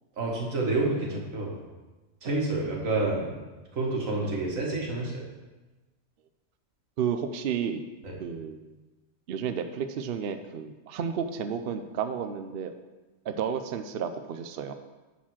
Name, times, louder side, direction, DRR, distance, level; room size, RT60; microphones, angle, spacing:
voice 1, 0.2-1.5 2.2-3.3 3.8-5.2 8.0-8.1, right 2 dB, 85° right, -2 dB, 2.1 m, -28 dB
voice 2, 7.0-7.9 8.2-8.8 9.3-12.7 13.3-14.7, right 7 dB, 60° right, 8 dB, 0.7 m, -32 dB
9.8 x 4.2 x 6.2 m, 1.2 s
omnidirectional pair, 1.4 m